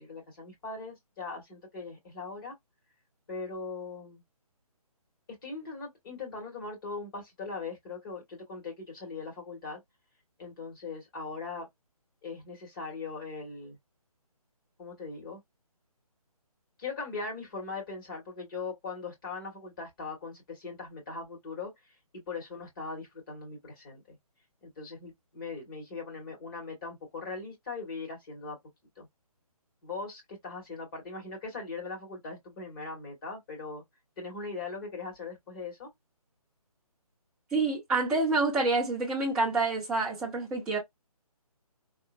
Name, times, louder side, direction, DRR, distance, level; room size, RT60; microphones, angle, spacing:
voice 1, 0.0-2.5 3.3-4.2 5.4-9.8 10.4-11.7 12.2-13.8 14.8-15.4 16.8-21.7 22.3-24.2 24.8-28.6 29.0-29.1 29.8-33.8 34.2-35.9, left 4 dB, 35° left, 2.0 m, -40 dB
voice 2, 37.5-40.8, right 3 dB, 5° right, 0.5 m, -27 dB
3.6 x 2.1 x 2.2 m
figure-of-eight pair, 155°, 19 cm